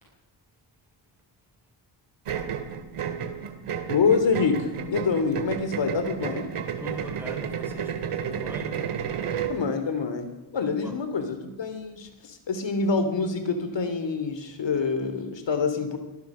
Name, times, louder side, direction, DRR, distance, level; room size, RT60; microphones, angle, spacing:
sound 1, 2.2-9.6, right 8 dB, 90° right, 2.5 m, -32 dB
voice 1, 3.9-6.5 9.5-10.3 10.5-16.0, left 4 dB, 60° left, 8 dB, 3.4 m, -26 dB
voice 2, 6.8-8.8 10.8-10.9, equal, 5° right, 3 dB, 4.4 m, -40 dB
24.0 x 18.0 x 6.4 m, 1.1 s
wide cardioid pair, 120°, 50 cm